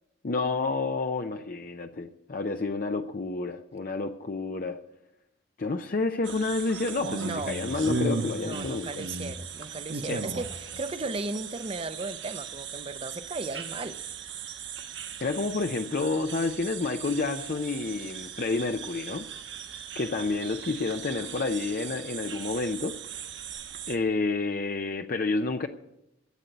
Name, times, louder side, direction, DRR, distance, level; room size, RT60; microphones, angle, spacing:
voice 1, 0.2-4.8 5.6-9.0 10.1-10.2 15.2-19.3 20.0-23.0 23.9-25.7, left 3 dB, 50° left, 0.6 m, -29 dB
sound 1, 6.2-24.0, right 5 dB, 75° right, 1.2 m, -37 dB
voice 2, 7.2-7.6 8.4-14.0, right 3 dB, 30° right, 0.6 m, -36 dB
12.5 x 8.1 x 9.1 m
head